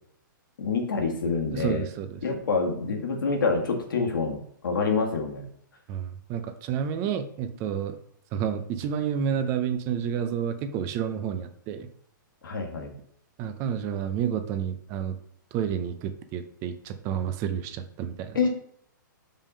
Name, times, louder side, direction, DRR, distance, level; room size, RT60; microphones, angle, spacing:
voice 1, 0.6-1.9 2.2-4.4 4.6-5.4 12.4-12.9 18.3-18.5, left 4 dB, 80° left, 2 dB, 1.7 m, -26 dB
voice 2, 1.5-2.2 5.9-8.0 8.3-11.9 13.4-15.2 15.5-18.4, right 8 dB, 25° right, 9 dB, 0.4 m, -30 dB
5.3 x 3.6 x 5.4 m, 0.66 s
hypercardioid pair, 155°, 11 cm